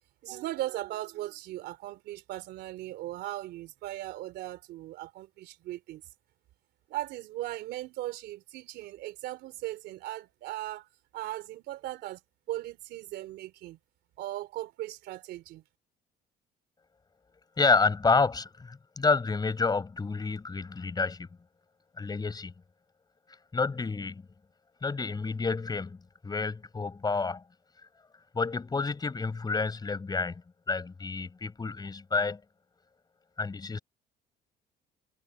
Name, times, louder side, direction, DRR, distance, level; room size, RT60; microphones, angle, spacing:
voice 1, 0.2-6.0 6.9-12.2 12.5-13.8 14.2-15.6, right 15 dB, 80° right, 3.3 m, -38 dB
voice 2, 17.6-21.3 22.0-22.5 23.5-24.2 24.8-27.4 28.3-30.4 30.7-32.4 33.4-33.8, left 4 dB, 25° left, 5.4 m, -29 dB
cardioid pair, 110°, 17 cm